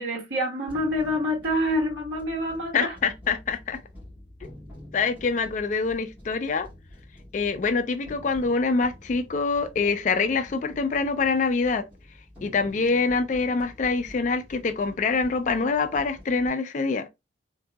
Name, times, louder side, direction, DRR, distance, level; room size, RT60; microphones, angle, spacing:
voice 1, 0.0-3.0, equal, 75° right, 1.3 m, -27 dB
sound 1, 0.7-16.5, left 1 dB, 10° right, 2.1 m, -48 dB
voice 2, 2.7-3.8 4.9-6.7 7.3-11.8 12.4-17.1, left 4 dB, 40° left, 0.3 m, -25 dB
3.7 x 2.6 x 2.2 m
head